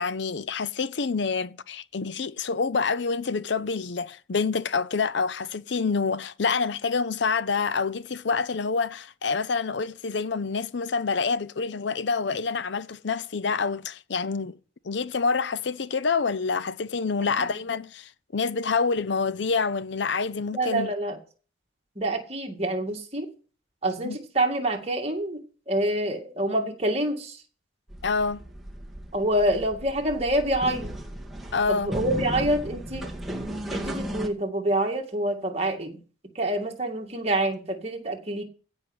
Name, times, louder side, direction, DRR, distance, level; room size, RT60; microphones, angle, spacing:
voice 1, 0.0-14.6 14.8-20.9 24.0-24.2 28.0-28.4 31.5-31.9, left 4 dB, 70° left, 0.6 m, -27 dB
voice 2, 20.5-21.2 22.0-23.3 23.8-27.4 29.1-30.9 31.7-33.1 33.7-36.0 36.3-38.4, right 1 dB, 35° right, 2.2 m, -27 dB
sound 1, 27.9-34.3, right 1 dB, ahead, 2.1 m, -35 dB
16.0 x 5.6 x 8.1 m
head